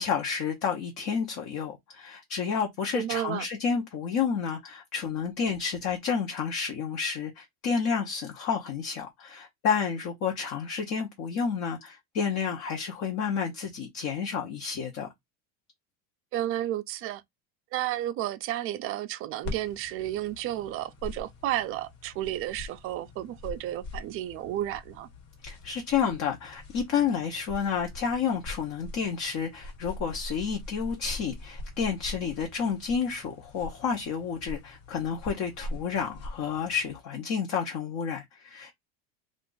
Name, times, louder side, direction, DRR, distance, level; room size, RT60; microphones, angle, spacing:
voice 1, 0.0-15.1 25.4-38.7, left 6 dB, 45° left, 0.8 m, -30 dB
voice 2, 2.9-3.5 16.3-17.2 17.7-25.1, right 13 dB, 35° right, 0.4 m, -32 dB
sound 1, 19.4-37.0, left 2 dB, 65° left, 1.4 m, -43 dB
2.5 x 2.4 x 3.8 m
supercardioid pair, 135°, 40 cm